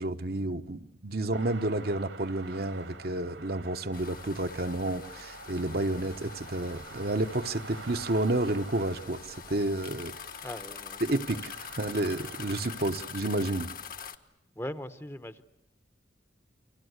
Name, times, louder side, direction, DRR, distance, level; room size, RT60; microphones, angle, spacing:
voice 1, 0.0-10.2 11.0-13.7, right 2 dB, 55° right, 1.1 m, -30 dB
sound 1, 1.3-13.1, right 4 dB, 85° right, 3.0 m, -48 dB
sound 2, 3.9-14.2, left 7 dB, 50° left, 1.5 m, -44 dB
voice 2, 10.4-11.0 11.3-11.4 14.6-15.4, left 1 dB, 15° left, 1.0 m, -39 dB
29.5 x 24.5 x 8.2 m
head